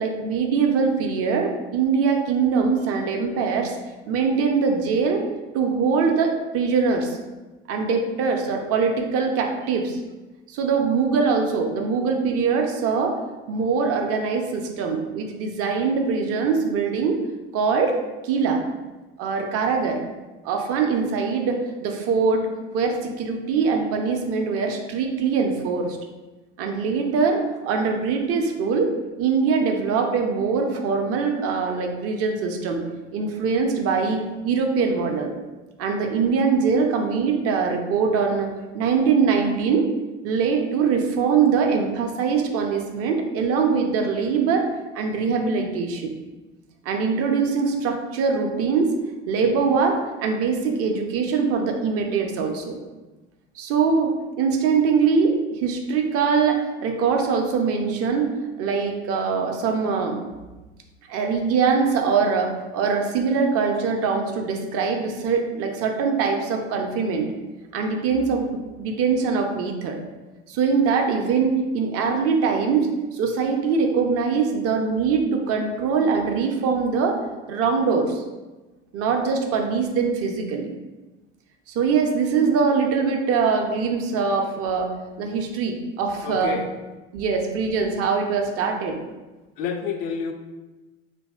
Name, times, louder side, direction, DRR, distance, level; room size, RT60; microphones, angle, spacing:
voice 1, 0.0-3.7 4.1-5.2 5.5-7.2 7.7-10.0 10.5-13.2 13.5-17.2 17.5-18.0 18.2-18.6 19.2-20.0 20.4-22.4 22.7-26.0 26.6-28.9 29.2-32.8 33.1-35.3 35.8-38.5 38.7-39.9 40.2-44.6 44.9-46.1 46.9-48.9 49.3-52.8 53.6-60.2 61.1-67.3 67.7-70.0 70.5-77.2 77.5-78.2 78.9-80.7 81.7-84.9 85.2-86.5 87.1-89.0, right 5 dB, 45° right, 3 dB, 0.5 m, -22 dB
voice 2, 86.2-86.7 89.6-90.3, left 6 dB, 60° left, 5 dB, 0.4 m, -28 dB
2.8 x 2.6 x 2.3 m, 1.2 s
hypercardioid pair, 90°, 34 cm